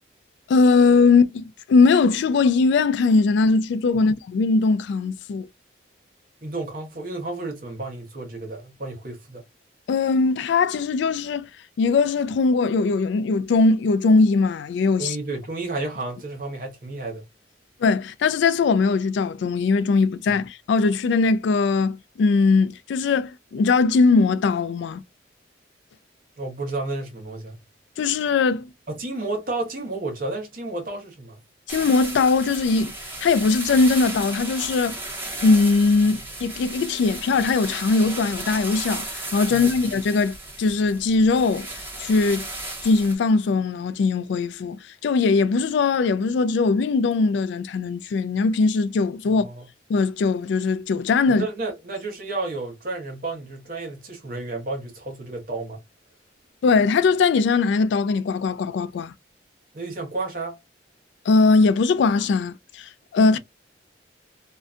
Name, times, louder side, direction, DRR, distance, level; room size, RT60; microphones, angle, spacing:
voice 1, 0.5-5.5 9.9-11.5 11.8-15.2 17.8-25.0 28.0-28.7 31.7-32.9 33.2-35.0 35.4-41.7 42.0-42.5 42.8-49.5 49.9-51.4 56.6-59.1 61.3-63.4, left 4 dB, 70° left, 0.3 m, -20 dB
voice 2, 6.4-9.4 15.0-17.2 20.3-20.4 26.4-27.6 28.9-31.4 36.0-36.3 39.5-39.8 49.3-49.7 51.3-55.8 59.7-60.6, right 2 dB, 45° right, 0.9 m, -32 dB
sound 1, 31.7-43.2, right 2 dB, 10° right, 0.8 m, -35 dB
2.6 x 2.2 x 2.4 m
head